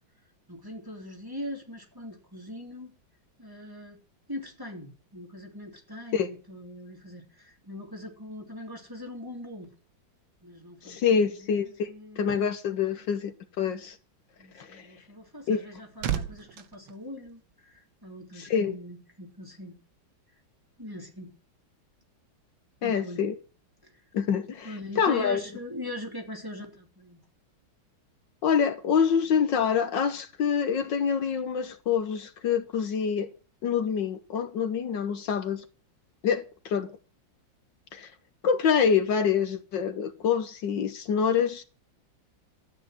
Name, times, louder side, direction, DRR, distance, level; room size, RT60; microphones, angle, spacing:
voice 1, 0.5-3.0 3.4-4.0 4.3-9.7 10.4-12.3 14.4-19.8 20.8-21.3 22.8-23.3 23.8-24.0 24.6-27.2, left 1 dB, 10° right, 3.2 m, -41 dB
voice 2, 10.8-14.0 14.6-14.9 15.5-15.6 18.5-18.7 22.8-23.3 24.1-24.7 25.0-25.4 28.4-33.3 33.6-35.7 36.2-36.9 37.9-38.1 38.4-41.6, left 7 dB, 70° left, 1.7 m, -26 dB
sound 1, 15.3-18.0 18.2-18.5, right 10 dB, 85° right, 1.8 m, -36 dB
13.0 x 9.3 x 7.6 m
omnidirectional pair, 2.1 m